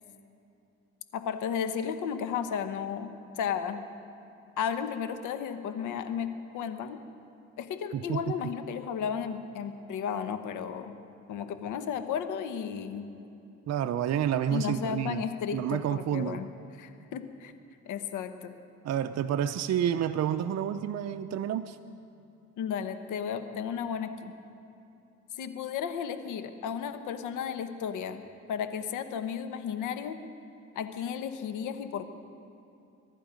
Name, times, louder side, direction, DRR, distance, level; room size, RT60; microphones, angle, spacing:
voice 1, 1.1-3.9 4.6-7.0 7.6-10.9 11.3-13.1 14.5-16.5 16.8-17.5 17.9-18.5 22.6-24.3 25.4-28.2 28.5-30.2 30.7-32.0, left 7 dB, 85° left, 9 dB, 1.1 m, -34 dB
voice 2, 7.9-8.4 13.7-15.2 15.5-16.4 18.8-21.8, right 9 dB, 60° right, 8 dB, 0.6 m, -29 dB
23.0 x 11.0 x 5.1 m, 2.7 s
cardioid pair, 90°, 30 cm